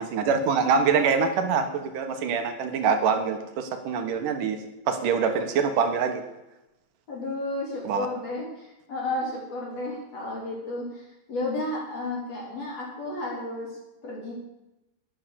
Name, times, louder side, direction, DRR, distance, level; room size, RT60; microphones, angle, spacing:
voice 1, 0.0-4.6 4.9-6.2 7.9-8.1, right 6 dB, 65° right, 7 dB, 2.7 m, -24 dB
voice 2, 7.1-11.0 11.3-13.7 14.0-14.3, left 2 dB, 45° left, -3 dB, 5.2 m, -32 dB
12.0 x 11.0 x 6.8 m, 0.95 s
omnidirectional pair, 4.3 m